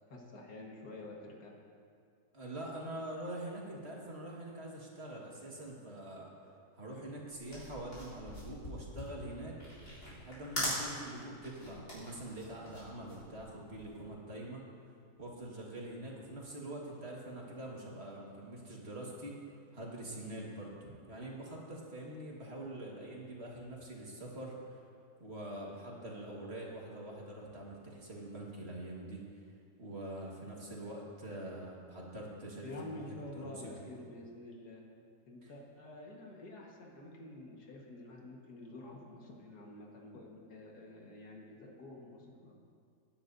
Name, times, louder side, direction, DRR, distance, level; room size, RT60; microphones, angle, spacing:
voice 1, 0.1-1.6 32.6-34.8 35.3-42.6, left 2 dB, 90° left, -1 dB, 2.1 m, -49 dB
voice 2, 2.3-6.3 6.7-9.6 10.2-14.6 15.2-19.3 19.7-24.8 25.2-29.2 29.8-33.7 35.4-35.5, right 1 dB, 40° right, -3 dB, 1.9 m, -44 dB
sound 1, 7.5-14.0, left 1 dB, 50° left, 3.8 m, -41 dB
19.5 x 10.0 x 2.7 m, 2.3 s
omnidirectional pair, 1.6 m